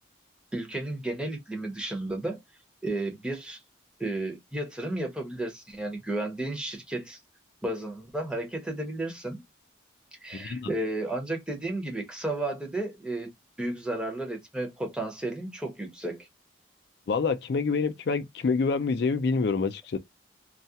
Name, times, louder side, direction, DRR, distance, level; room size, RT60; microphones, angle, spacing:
voice 1, 0.5-2.4 2.8-3.6 4.0-7.2 7.6-9.4 10.2-13.3 13.6-16.3, right 2 dB, 5° right, 0.6 m, -33 dB
voice 2, 17.1-20.0, left 4 dB, 55° left, 0.4 m, -27 dB
2.3 x 2.1 x 2.6 m
head